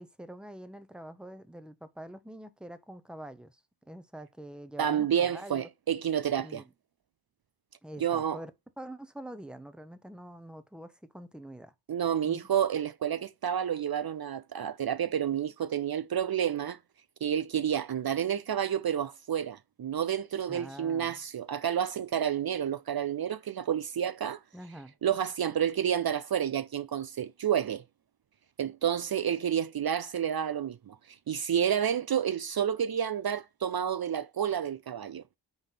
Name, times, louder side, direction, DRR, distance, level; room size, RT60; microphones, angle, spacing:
voice 1, 0.0-3.6 3.9-5.7 6.4-6.6 7.8-8.5 8.8-11.7 12.2-12.4 20.5-21.2 24.5-24.9, right 1 dB, ahead, 0.9 m, -45 dB
voice 2, 4.8-6.6 8.0-8.4 11.9-16.8 17.2-24.4 25.0-27.8 28.6-31.0 31.3-35.2, right 9 dB, 60° right, 0.6 m, -30 dB
9.5 x 3.4 x 5.9 m
wide cardioid pair, 85°, 43 cm